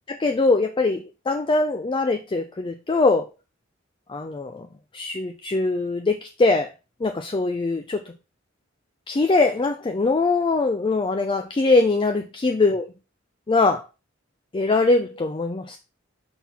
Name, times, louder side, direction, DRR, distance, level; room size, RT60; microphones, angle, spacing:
voice 1, 0.1-3.3 4.1-4.7 4.9-6.7 7.0-8.0 9.1-12.8 13.5-13.8 14.5-15.8, left 3 dB, 25° left, 0.4 m, -22 dB
5.8 x 4.0 x 4.1 m
head